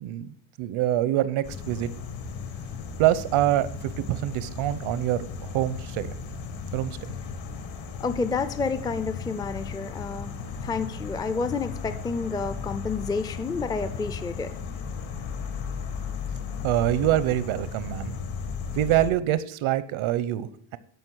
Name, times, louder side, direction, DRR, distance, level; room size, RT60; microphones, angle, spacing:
voice 1, 0.0-1.9 3.0-6.1 6.7-7.0 16.6-18.1 18.7-20.8, right 13 dB, 80° right, 15 dB, 0.9 m, -25 dB
sound 1, 1.4-19.1, left 5 dB, 75° left, 1.9 m, -36 dB
voice 2, 8.0-10.3 10.6-14.5, left 4 dB, 10° left, 11 dB, 0.4 m, -29 dB
12.5 x 5.4 x 6.3 m, 0.66 s
cardioid pair, 160°, 47 cm